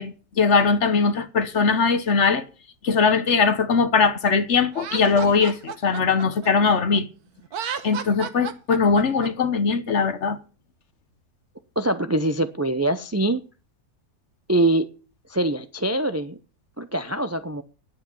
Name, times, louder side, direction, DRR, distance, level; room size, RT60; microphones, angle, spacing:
voice 1, 0.0-2.4 2.8-7.1 7.8-10.4, left 5 dB, 50° left, 1.3 m, -20 dB
Laughter, 4.7-7.0 7.4-9.3, right 7 dB, 85° right, 1.6 m, -33 dB
voice 2, 11.8-13.4 14.5-14.9 15.3-16.4 16.8-17.6, right 1 dB, 25° right, 0.3 m, -23 dB
10.5 x 8.6 x 7.0 m
omnidirectional pair, 1.6 m